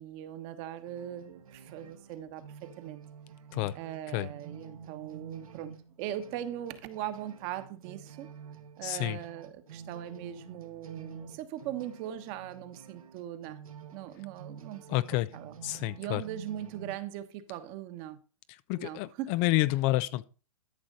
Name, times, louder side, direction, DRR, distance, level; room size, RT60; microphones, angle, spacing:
voice 1, 0.0-3.0 3.7-5.7 6.0-8.3 8.8-13.6 13.9-14.9 15.3-15.6 16.0-18.2 18.7-19.3, right 11 dB, 35° right, 1.2 m, -40 dB
sound 1, 0.9-16.9, right 6 dB, 85° right, 1.8 m, -49 dB
voice 2, 8.8-9.2 14.9-15.3 15.6-16.2 18.5-20.2, left 17 dB, 25° left, 0.4 m, -29 dB
13.0 x 6.2 x 3.9 m
hypercardioid pair, 140°, 18 cm